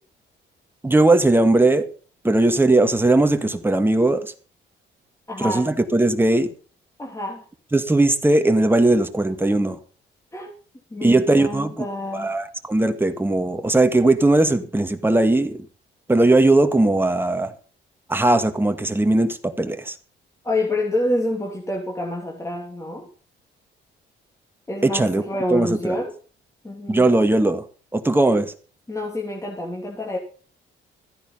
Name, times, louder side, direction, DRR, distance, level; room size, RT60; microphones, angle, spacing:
voice 1, 0.8-1.9 2.2-4.3 5.4-6.5 7.7-9.8 11.0-11.9 12.1-15.6 16.1-17.5 18.1-19.9 24.8-25.2 25.5-26.0 26.9-27.6 27.9-28.5, right 2 dB, 10° right, 7 dB, 1.9 m, -18 dB
voice 2, 5.3-5.7 7.0-7.5 10.3-10.5 10.9-12.4 20.4-23.1 24.7-26.1 26.6-27.1 28.9-30.2, left 1 dB, 15° left, -1 dB, 3.0 m, -27 dB
14.0 x 10.0 x 5.6 m, 0.39 s
cardioid pair, 90°, 20 cm